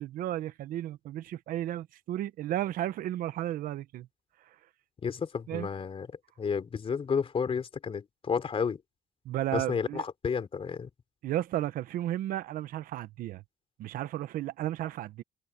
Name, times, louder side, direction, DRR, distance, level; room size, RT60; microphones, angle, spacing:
voice 1, 0.0-4.1 5.5-5.7 9.2-10.0 11.2-13.4 13.8-15.2, right 13 dB, 70° right, 1.3 m, -33 dB
voice 2, 5.0-6.1 6.4-8.8 9.5-10.9, left 6 dB, 40° left, 3.4 m, -31 dB
supercardioid pair, 85°, 15 cm